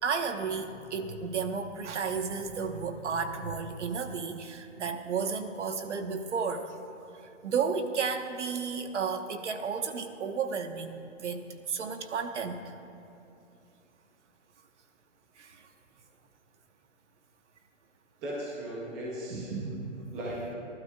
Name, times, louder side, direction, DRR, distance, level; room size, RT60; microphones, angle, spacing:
voice 1, 0.0-6.7 7.4-12.7 15.4-15.6 19.3-20.1, right 5 dB, 65° right, 7 dB, 1.2 m, -33 dB
voice 2, 18.2-19.6 20.1-20.5, equal, 5° right, -5 dB, 0.5 m, -37 dB
29.5 x 12.5 x 2.3 m, 2.7 s
hypercardioid pair, 160°, 38 cm